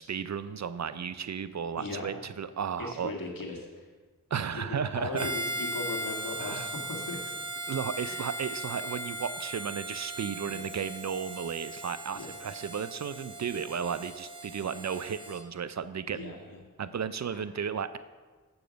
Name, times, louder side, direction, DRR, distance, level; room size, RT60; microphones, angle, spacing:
voice 1, 0.0-3.1 4.3-5.3 6.4-6.7 7.7-16.3 16.8-18.0, right 7 dB, 50° right, 14 dB, 0.5 m, -34 dB
voice 2, 1.7-2.2 2.8-3.8 4.5-7.3 8.0-8.2 10.4-10.7 12.1-12.3 16.1-16.6, left 3 dB, 65° left, 0 dB, 1.7 m, -38 dB
Harmonica, 5.1-15.4, right 1 dB, 15° right, 1.0 m, -38 dB
7.8 x 7.1 x 5.1 m, 1.4 s
cardioid pair, 45°, 36 cm